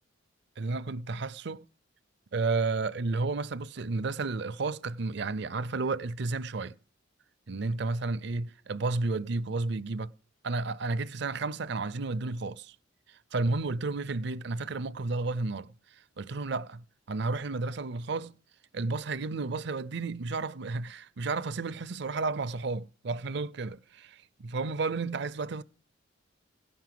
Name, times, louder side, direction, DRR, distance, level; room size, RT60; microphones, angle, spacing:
voice 1, 0.6-1.7 2.3-6.7 7.5-10.1 10.4-12.8 13.1-15.7 16.2-18.4 18.7-25.6, right 3 dB, 55° right, 0.5 m, -32 dB
17.0 x 6.0 x 7.6 m
head